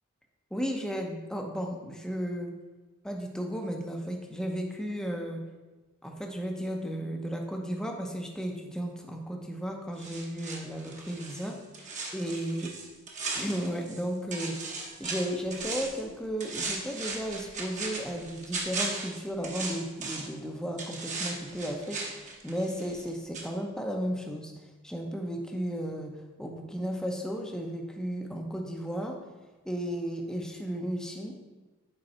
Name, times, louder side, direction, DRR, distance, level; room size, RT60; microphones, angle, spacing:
voice 1, 0.5-2.5 3.0-5.4 6.0-12.7 13.3-14.6 15.0-24.5 24.8-29.2 29.6-31.3, equal, 5° left, 1 dB, 0.8 m, -34 dB
sound 1, 10.0-14.0 14.3-16.0 16.4-20.4 20.8-23.1 23.3-23.5, right 3 dB, 35° right, 1.1 m, -37 dB
7.9 x 4.7 x 4.3 m, 1.2 s
head